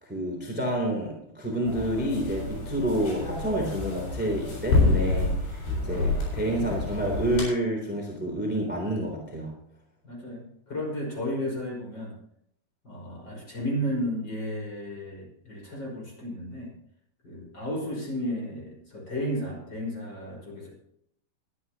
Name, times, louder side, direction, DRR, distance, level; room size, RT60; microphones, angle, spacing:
voice 1, 0.0-9.5, right 1 dB, 5° right, 0 dB, 2.5 m, -29 dB
sound 1, 1.6-7.4, left 3 dB, 80° left, 9.0 m, -28 dB
voice 2, 10.0-12.1 12.8-16.7 17.2-20.7, equal, 25° left, -2 dB, 5.8 m, -33 dB
22.0 x 11.5 x 3.0 m, 0.72 s
omnidirectional pair, 4.8 m